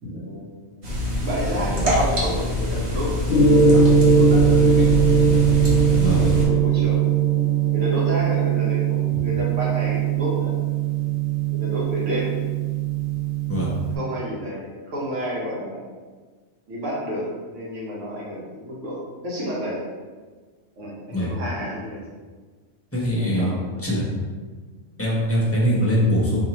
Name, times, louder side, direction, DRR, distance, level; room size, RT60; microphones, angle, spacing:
voice 1, 0.0-0.7 1.2-3.2 4.2-4.9 5.8-7.2 7.7-10.7 11.5-12.4 14.0-15.8 16.7-19.8 20.8-22.0 23.2-24.0, equal, 75° right, -5 dB, 1.4 m, -30 dB
sound 1, 0.8-6.5, left 1 dB, 50° right, 1.1 m, -24 dB
Gong, 3.3-14.0, right 6 dB, 60° left, 0.5 m, -20 dB
voice 2, 22.9-23.5 23.8-24.0 25.0-26.4, equal, 15° left, -6 dB, 0.8 m, -22 dB
4.7 x 2.6 x 2.9 m, 1.4 s
omnidirectional pair, 1.3 m